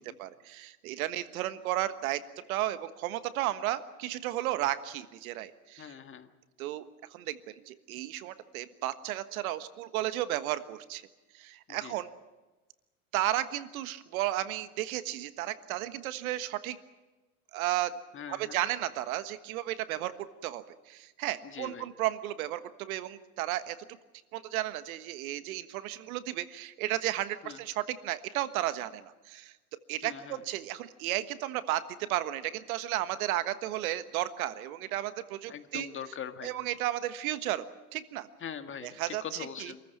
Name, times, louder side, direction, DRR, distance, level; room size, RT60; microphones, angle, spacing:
voice 1, 0.0-2.2 2.5-5.9 6.6-6.8 7.1-11.0 11.3-12.1 13.1-16.8 17.5-17.9 18.3-20.1 20.4-23.8 24.3-29.5 29.9-35.9 36.4-38.3 38.8-39.7, right 14 dB, 70° right, 13 dB, 1.5 m, -33 dB
voice 2, 5.8-6.3 11.7-11.9 18.1-18.6 21.4-21.9 27.4-27.6 30.0-30.4 35.5-36.5 38.4-39.8, left 8 dB, 25° left, 9 dB, 1.7 m, -42 dB
27.0 x 14.5 x 9.2 m, 1.1 s
hypercardioid pair, 105°, 44 cm